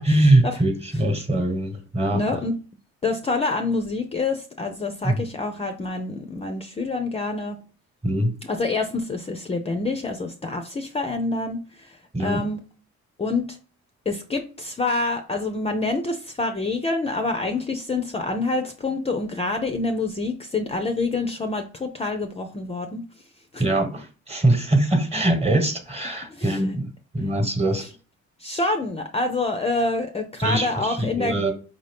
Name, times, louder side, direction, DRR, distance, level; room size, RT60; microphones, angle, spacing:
voice 1, 0.0-2.2 5.0-5.2 8.0-8.3 12.1-12.4 23.6-27.9 30.4-31.5, right 1 dB, 20° right, 6 dB, 1.1 m, -22 dB
voice 2, 2.1-2.5 3.0-7.6 8.5-12.6 13.2-13.6 14.1-23.0 23.5-23.6 26.3-26.8 28.4-31.3, left 3 dB, 20° left, 6 dB, 0.5 m, -27 dB
4.7 x 2.7 x 3.4 m, 0.36 s
cardioid pair, 90°, 30 cm